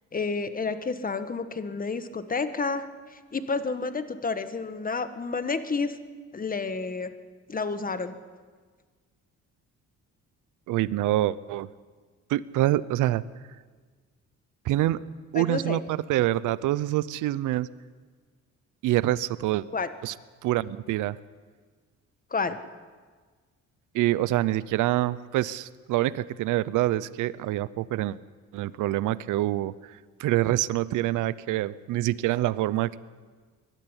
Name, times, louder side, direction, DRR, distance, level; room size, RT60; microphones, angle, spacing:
voice 1, 0.1-6.0 6.3-7.1 7.5-8.2 15.3-15.8 19.7-19.9 22.3-22.6, left 4 dB, 30° left, 11 dB, 1.4 m, -30 dB
voice 2, 10.7-11.7 12.3-13.2 14.6-15.0 15.3-17.7 18.8-19.7 20.0-20.1 20.4-21.2 23.9-28.2 28.5-33.0, right 15 dB, 90° right, 19 dB, 0.6 m, -26 dB
21.5 x 12.5 x 9.8 m, 1.5 s
cardioid pair, 90°, 30 cm